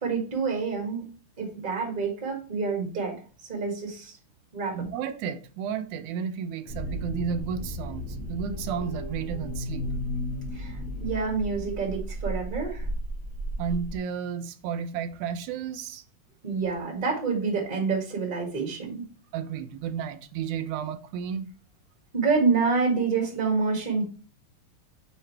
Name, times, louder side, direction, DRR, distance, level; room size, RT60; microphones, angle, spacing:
voice 1, 0.0-1.1 1.4-3.1 3.5-4.2 4.5-4.8 10.5-12.8 16.4-19.0 22.1-24.0, right 4 dB, 20° right, 1.5 m, -27 dB
voice 2, 4.7-9.9 13.6-16.0 19.3-21.5, right 7 dB, 90° right, 2.1 m, -32 dB
sound 1, 6.7-14.0, equal, 50° left, 2.2 m, -34 dB
6.6 x 5.5 x 3.3 m
omnidirectional pair, 3.3 m